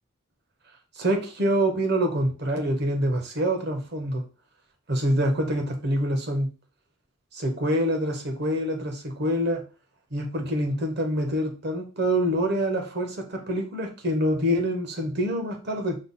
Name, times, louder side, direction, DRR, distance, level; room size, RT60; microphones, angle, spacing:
voice 1, 1.0-4.2 4.9-6.5 7.3-9.6 10.1-16.0, equal, 55° right, 3 dB, 0.9 m, -26 dB
5.3 x 2.0 x 4.0 m, 0.34 s
head